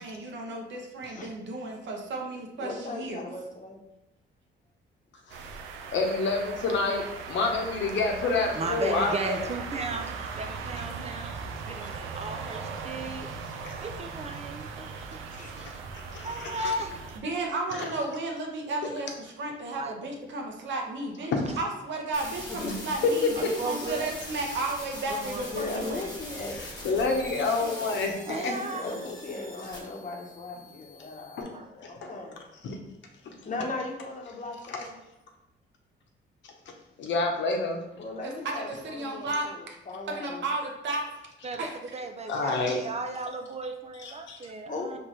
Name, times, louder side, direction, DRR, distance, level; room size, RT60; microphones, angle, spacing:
voice 1, 0.0-3.3 17.1-26.1 38.2-39.8 40.1-41.1 41.6-41.8, right 2 dB, 65° right, 1 dB, 1.0 m, -33 dB
voice 2, 2.6-3.8 6.6-6.7 9.3-10.1 13.0-13.1 15.4-15.6 22.5-22.9 25.4-26.6 27.2-27.4 28.6-32.4 33.4-34.9 38.0-40.4 44.7-45.0, left 3 dB, 40° left, 1 dB, 1.0 m, -38 dB
sound 1, 5.3-17.2, right 5 dB, 85° right, 0.5 m, -38 dB
voice 3, 5.9-9.3 13.6-13.7 15.6-15.7 16.1-16.7 17.7-17.9 21.3-21.5 22.6-22.7 23.0-23.1 23.4-23.5 26.5-28.5 28.8-28.9 31.4-31.5 31.8-31.9 32.6-32.8 33.3-33.4 34.7-34.8 37.0-37.8 42.3-42.8 44.0-44.4, left 3 dB, 70° left, 2 dB, 0.9 m, -28 dB
voice 4, 8.5-11.4 11.7-13.3 13.8-15.2 15.6-15.8 16.2-17.0 19.7-20.1 21.5-21.6 23.4-24.1 25.1-25.8 28.3-29.0 31.5-31.7 41.4-45.0, right 2 dB, 35° right, 5 dB, 0.5 m, -36 dB
sound 2, 22.1-31.4, left 1 dB, 20° left, 1.5 m, -42 dB
4.5 x 3.3 x 3.2 m, 0.91 s
cardioid pair, 90°, 20 cm